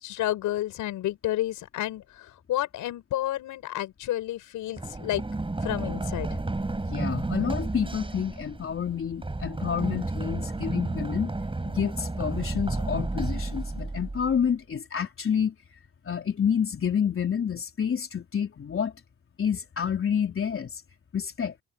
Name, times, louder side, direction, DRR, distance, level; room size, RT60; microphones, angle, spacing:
voice 1, 0.0-5.2 5.6-6.4, left 14 dB, 85° left, 7.1 m, -30 dB
Run, 4.8-14.5, right 2 dB, 15° right, 7.8 m, -32 dB
voice 2, 6.9-11.3 11.6-15.5 16.1-18.9 19.4-20.8 21.1-21.5, left 7 dB, 45° left, 3.8 m, -28 dB
cardioid pair, 90°, 30 cm